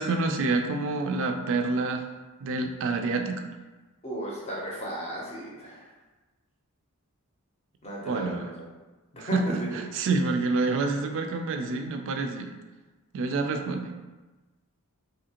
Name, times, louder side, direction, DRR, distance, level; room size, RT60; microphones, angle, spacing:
voice 1, 0.0-2.1 2.4-3.4 8.1-8.5 9.2-12.5 13.1-13.9, right 3 dB, 60° right, 5 dB, 0.3 m, -28 dB
voice 2, 4.0-5.9 7.8-8.5 9.1-9.7, right 1 dB, 30° left, -4 dB, 0.6 m, -35 dB
2.8 x 2.5 x 2.8 m, 1.2 s
head